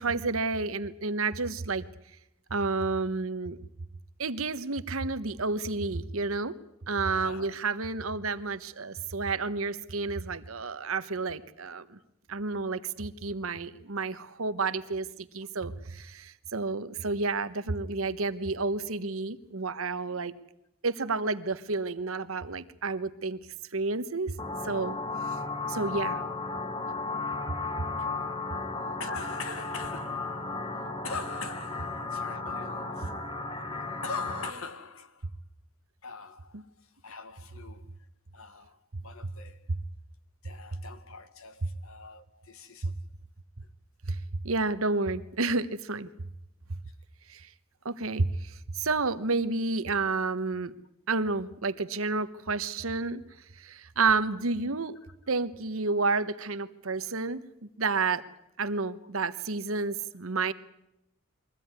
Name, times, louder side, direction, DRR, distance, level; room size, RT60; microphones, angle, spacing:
voice 1, 0.0-1.9 2.5-3.6 4.2-6.5 6.9-12.0 12.3-20.3 20.8-23.4 23.7-24.3 24.6-25.0 25.7-26.2 44.1-44.2 44.4-46.1 47.3-47.5 47.8-50.7 51.1-53.2 53.6-55.0 55.3-58.2 58.6-60.5, right 3 dB, 85° right, 1.2 m, -30 dB
voice 2, 7.1-7.6 8.0-8.1 15.4-15.5 28.0-28.3 29.0-33.1 33.5-35.3 36.0-37.9 38.3-39.7 40.4-43.0 56.9-57.1 59.0-59.1, left 4 dB, 85° left, 1.6 m, -43 dB
sound 1, 24.4-34.5, left 3 dB, 25° left, 1.5 m, -34 dB
23.0 x 15.5 x 9.6 m
head